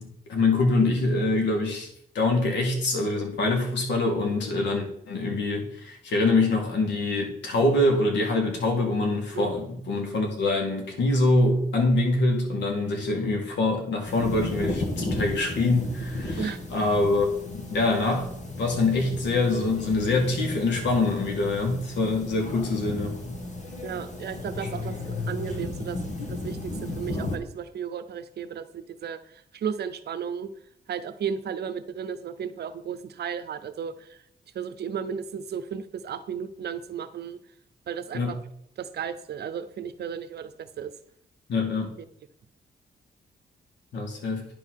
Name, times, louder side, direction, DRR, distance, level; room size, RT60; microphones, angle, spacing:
voice 1, 0.0-1.9 2.1-18.3 18.6-23.4 38.1-38.3 41.5-41.9 43.9-44.5, left 2 dB, 85° left, 2 dB, 2.2 m, -25 dB
sound 1, 14.1-27.4, left 2 dB, 40° left, 1.9 m, -34 dB
voice 2, 23.8-26.0 26.3-30.5 30.9-34.2 34.5-37.4 37.9-38.4 38.8-40.9, right 7 dB, 65° right, 12 dB, 0.8 m, -34 dB
9.8 x 4.0 x 6.4 m, 0.70 s
cardioid pair, 100°, 18 cm